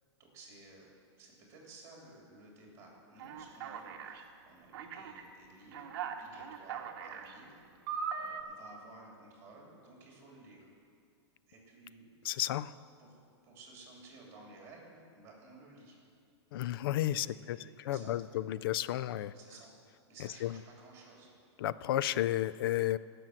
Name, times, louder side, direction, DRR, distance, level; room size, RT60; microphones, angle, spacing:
voice 1, 0.2-0.9 1.2-7.6 8.2-10.7 11.5-12.4 13.0-13.1 13.4-16.0 17.1-18.3 19.3-19.7 20.1-21.3, right 2 dB, 20° right, -2 dB, 3.0 m, -55 dB
Alarm, 3.2-4.2 4.7-5.2 5.7-7.3 7.9-8.4, right 7 dB, 50° right, 1.0 m, -40 dB
voice 2, 12.2-12.7 16.5-19.3 20.4-20.5 21.6-23.0, left 13 dB, 55° left, 17 dB, 0.4 m, -32 dB
15.5 x 6.1 x 7.8 m, 2.3 s
hypercardioid pair, 150°, 15 cm